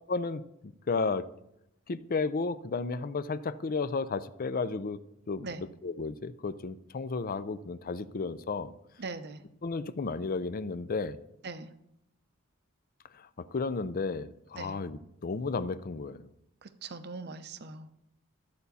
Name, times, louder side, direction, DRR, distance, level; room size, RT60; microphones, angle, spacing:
voice 1, 0.1-1.3 1.9-5.0 5.3-8.7 9.6-11.2 13.1-16.3, left 4 dB, 45° left, 0.5 m, -33 dB
voice 2, 9.0-9.4 11.4-11.7 14.6-14.8 16.6-17.9, right 3 dB, 50° right, 0.7 m, -41 dB
13.5 x 8.1 x 4.2 m
head